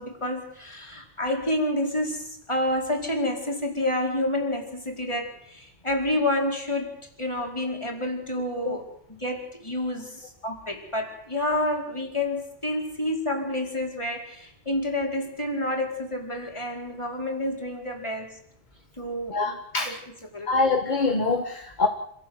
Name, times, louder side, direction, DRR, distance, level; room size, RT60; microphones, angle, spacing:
voice 1, 0.0-6.9 7.2-8.8 9.1-18.4 19.0-19.6 19.8-20.0 20.3-20.5, left 1 dB, 25° left, 1 dB, 4.8 m, -29 dB
voice 2, 19.3-19.9 20.5-21.9, left 3 dB, 45° left, 5 dB, 1.8 m, -24 dB
27.5 x 17.0 x 8.1 m, 0.70 s
omnidirectional pair, 1.1 m